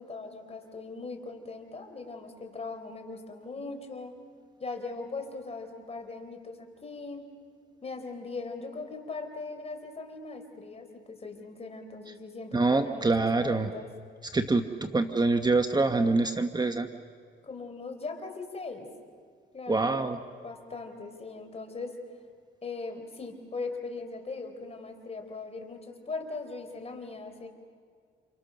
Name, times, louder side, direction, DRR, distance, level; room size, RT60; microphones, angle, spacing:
voice 1, 0.0-4.2 4.6-7.3 7.8-13.9 17.4-18.9 19.5-19.9 20.4-22.0 22.6-27.5, left 3 dB, 30° left, 5 dB, 4.3 m, -39 dB
voice 2, 12.5-13.7 14.3-16.9 19.7-20.2, right 3 dB, 20° right, 7 dB, 1.3 m, -25 dB
29.5 x 28.5 x 6.7 m, 2.1 s
cardioid pair, 90°, 20 cm